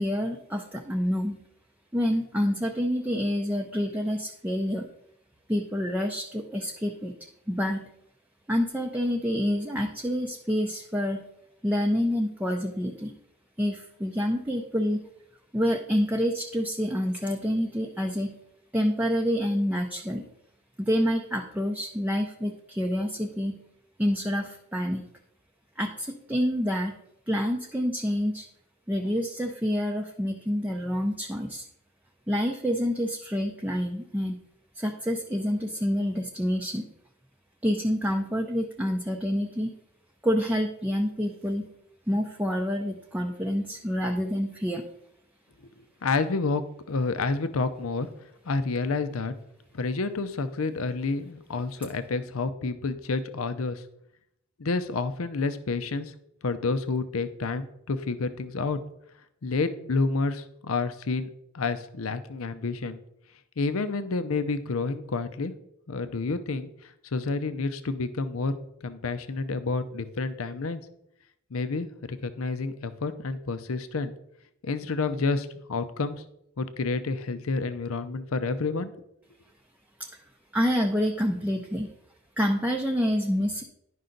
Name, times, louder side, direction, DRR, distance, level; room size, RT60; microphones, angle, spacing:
voice 1, 0.0-1.4 1.9-4.9 5.5-7.1 7.5-7.9 8.5-11.2 11.6-13.1 13.6-15.0 15.5-18.4 18.7-20.3 20.8-23.6 24.0-25.1 25.8-27.0 27.3-28.5 28.9-31.6 32.3-34.4 34.8-36.9 37.6-39.7 40.2-41.7 42.1-44.8 80.0-80.1 80.5-81.9 82.4-83.6, equal, 5° right, 1 dB, 0.6 m, -27 dB
voice 2, 46.0-46.6 46.9-48.1 48.5-49.3 49.7-53.8 54.6-56.1 56.4-58.8 59.4-61.3 61.5-63.0 63.6-65.5 65.9-66.7 67.1-68.6 68.8-70.8 71.5-74.1 74.6-76.2 76.6-78.9, left 3 dB, 75° left, 11 dB, 0.6 m, -29 dB
11.0 x 5.5 x 3.9 m, 0.77 s
head